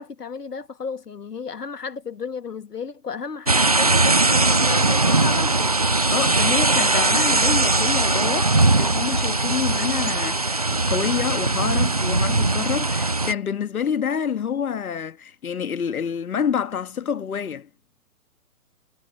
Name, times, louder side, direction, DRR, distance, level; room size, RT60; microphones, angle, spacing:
voice 1, 0.0-5.7, left 5 dB, 85° left, 2.2 m, -33 dB
sound 1, 3.5-13.3, right 2 dB, 25° right, 0.4 m, -20 dB
voice 2, 6.1-17.7, left 7 dB, 65° left, 1.7 m, -27 dB
hypercardioid pair, 140°, 46 cm